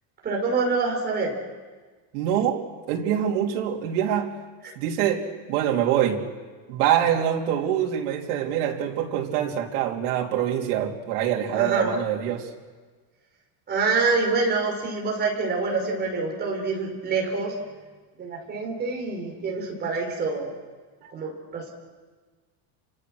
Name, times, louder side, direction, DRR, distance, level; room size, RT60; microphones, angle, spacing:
voice 1, 0.2-1.3 11.5-11.9 13.7-17.6 18.2-20.5 21.1-21.7, right 4 dB, 20° right, -1 dB, 5.2 m, -26 dB
voice 2, 2.1-4.3 4.8-6.2 6.7-12.5 21.0-21.1, right 10 dB, 85° right, 0 dB, 3.5 m, -25 dB
30.0 x 25.0 x 6.5 m, 1.4 s
cardioid pair, 175°, 44 cm